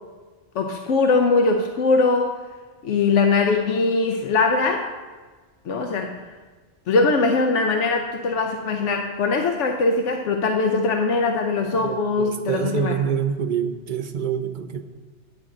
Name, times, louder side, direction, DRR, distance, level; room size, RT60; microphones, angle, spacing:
voice 1, 0.5-2.4 2.8-4.9 5.6-6.2 6.9-12.9, left 3 dB, 85° left, 4 dB, 1.0 m, -21 dB
voice 2, 11.6-14.8, right 7 dB, 50° right, 8 dB, 0.7 m, -26 dB
10.0 x 8.4 x 3.8 m, 1.4 s
omnidirectional pair, 1.2 m